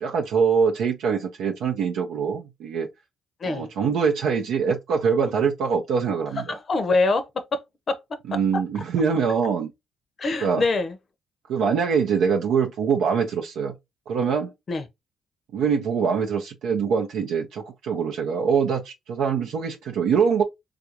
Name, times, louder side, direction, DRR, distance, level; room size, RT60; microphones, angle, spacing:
voice 1, 0.0-2.9 3.4-6.4 8.3-9.7 10.4-10.6 11.5-13.7 14.1-14.5 15.5-20.4, right 6 dB, 85° right, 0.6 m, -23 dB
voice 2, 6.5-7.6 7.9-8.0 10.2-11.0 14.7-14.8, left 3 dB, 45° left, 0.6 m, -24 dB
3.5 x 2.4 x 2.8 m
cardioid pair, 90°, 0 cm